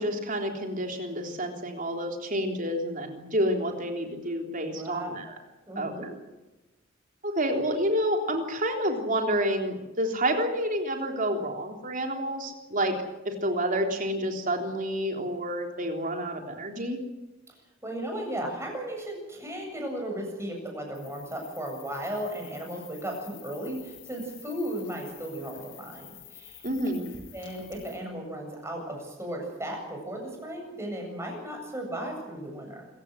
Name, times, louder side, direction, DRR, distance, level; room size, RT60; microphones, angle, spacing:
voice 1, 0.0-5.4 5.8-5.9 7.2-12.9 13.2-17.0 26.6-27.1, equal, 45° right, 3 dB, 3.7 m, -29 dB
voice 2, 4.7-5.3 5.7-6.1 17.5-17.6 17.8-26.7 27.3-32.8, right 1 dB, 15° right, 1 dB, 7.9 m, -35 dB
sound 1, 20.9-28.0, left 9 dB, 65° left, 6.5 m, -50 dB
25.5 x 15.5 x 9.8 m, 1.0 s
head